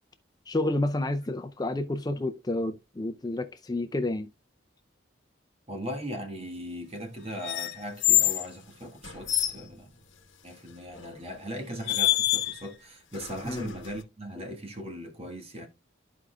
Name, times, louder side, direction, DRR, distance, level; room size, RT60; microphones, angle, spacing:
voice 1, 0.5-4.3 13.5-13.7, left 2 dB, 20° left, 0.4 m, -30 dB
voice 2, 5.7-9.9 10.4-15.7, equal, 30° right, 1.3 m, -39 dB
sound 1, 7.4-8.5 9.0-9.6 11.0-11.2 11.9-12.7 13.1-14.0, left 15 dB, 70° left, 1.0 m, -26 dB
13.5 x 4.8 x 2.2 m
head